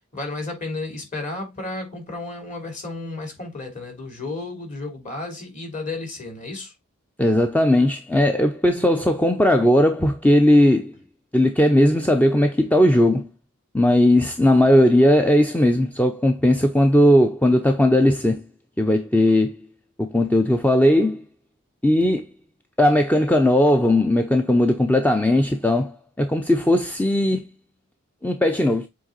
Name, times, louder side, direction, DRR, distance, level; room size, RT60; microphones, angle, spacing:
voice 1, 0.1-6.7, left 2 dB, 35° left, 3.1 m, -32 dB
voice 2, 7.2-10.9 11.3-13.3 13.7-18.4 18.8-19.6 20.0-21.2 21.8-22.3 22.8-27.5 28.2-28.9, left 1 dB, 5° left, 0.5 m, -18 dB
7.7 x 3.7 x 3.9 m
head